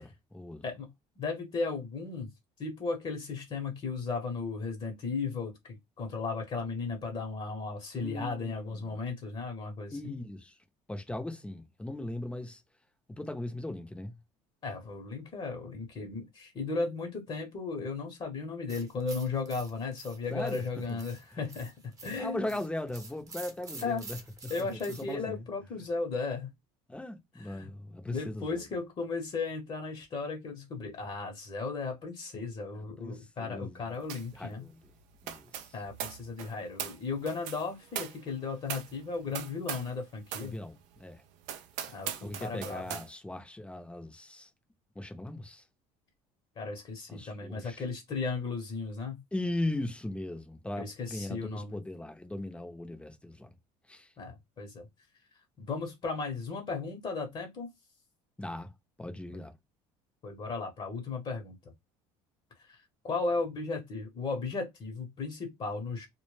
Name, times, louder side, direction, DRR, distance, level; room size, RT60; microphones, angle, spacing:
voice 1, 0.0-0.6 8.0-9.0 9.9-10.6 10.9-12.6 13.2-14.1 20.3-20.6 22.1-24.2 24.4-25.4 26.9-28.6 32.7-33.8 34.3-34.8 35.2-35.7 40.4-41.2 42.2-44.5 45.0-45.6 47.1-47.8 49.3-53.5 53.9-54.1 58.4-58.7 59.0-59.5, left 1 dB, 10° left, 0.6 m, -38 dB
voice 2, 0.6-2.3 2.6-10.2 14.6-21.7 22.0-22.6 23.8-24.0 24.5-26.5 27.4-27.7 28.1-34.7 35.7-40.6 41.9-43.0 46.6-49.2 50.8-51.8 54.2-54.9 55.6-57.7 60.2-61.6 62.6-62.8 63.0-66.1, left 4 dB, 40° left, 0.8 m, -35 dB
sound 1, 18.7-25.1, right 3 dB, 25° right, 0.7 m, -48 dB
sound 2, 34.1-34.4 34.6-40.0 40.3-40.5 41.0-41.1 41.4-43.1, right 9 dB, 80° right, 0.5 m, -40 dB
2.1 x 2.0 x 3.1 m
supercardioid pair, 105°, 13 cm